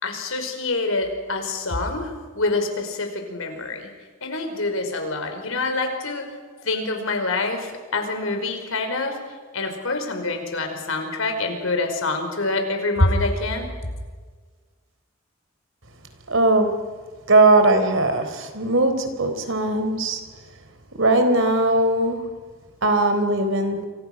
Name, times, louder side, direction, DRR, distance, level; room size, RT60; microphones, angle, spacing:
voice 1, 0.0-3.9 4.2-9.2 9.5-13.7, left 2 dB, 80° left, 5 dB, 5.2 m, -26 dB
voice 2, 16.3-16.8 17.3-20.2 20.9-22.4 22.8-23.9, right 2 dB, 65° right, 8 dB, 3.9 m, -19 dB
29.5 x 25.5 x 6.2 m, 1.5 s
head